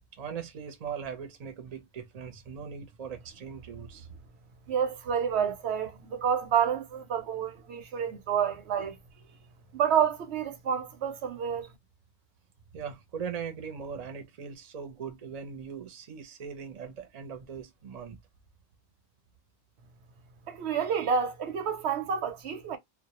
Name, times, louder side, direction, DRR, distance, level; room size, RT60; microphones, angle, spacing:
voice 1, 0.2-4.1 9.3-9.4 12.7-18.2, right 6 dB, 45° right, 0.6 m, -40 dB
voice 2, 4.7-8.9 9.7-11.7 20.5-22.8, right 7 dB, 80° right, 0.9 m, -29 dB
2.2 x 2.1 x 2.9 m
omnidirectional pair, 1.1 m